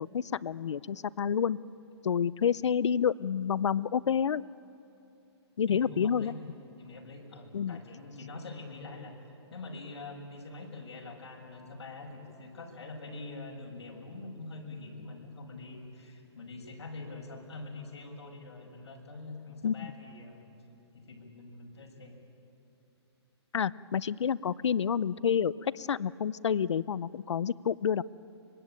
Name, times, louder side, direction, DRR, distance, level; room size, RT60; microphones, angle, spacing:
voice 1, 0.0-1.6 2.0-4.4 5.6-6.3 7.5-7.8 19.6-19.8 23.5-28.0, left 7 dB, 85° left, 20 dB, 0.6 m, -29 dB
voice 2, 5.7-6.4 6.8-9.1 9.5-20.5 20.9-22.1, left 3 dB, 70° left, 0 dB, 6.2 m, -44 dB
24.5 x 22.0 x 9.0 m, 2.8 s
hypercardioid pair, 170°, 15 cm